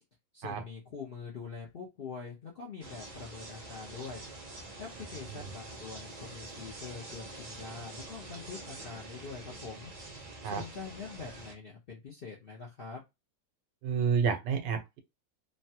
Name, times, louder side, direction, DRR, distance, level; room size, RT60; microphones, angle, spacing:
voice 1, 0.3-4.2 4.8-13.0, left 5 dB, 60° left, 0.6 m, -44 dB
sound 1, 2.8-11.5, right 2 dB, 50° right, 0.4 m, -46 dB
voice 2, 13.8-15.0, right 6 dB, 90° right, 1.3 m, -30 dB
3.1 x 2.2 x 2.8 m
omnidirectional pair, 1.9 m